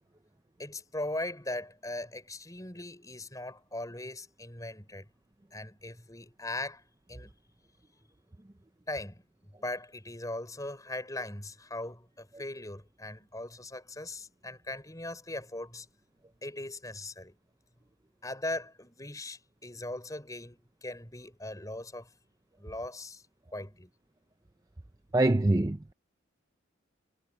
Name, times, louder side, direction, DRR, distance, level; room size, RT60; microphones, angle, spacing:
voice 1, 0.6-5.1 5.5-6.8 7.1-7.3 8.9-9.2 9.6-15.9 16.4-17.3 18.2-22.1 22.6-23.2 23.5-23.9, left 1 dB, 15° left, 4.5 m, -39 dB
voice 2, 25.1-25.9, right 2 dB, 15° right, 0.5 m, -24 dB
head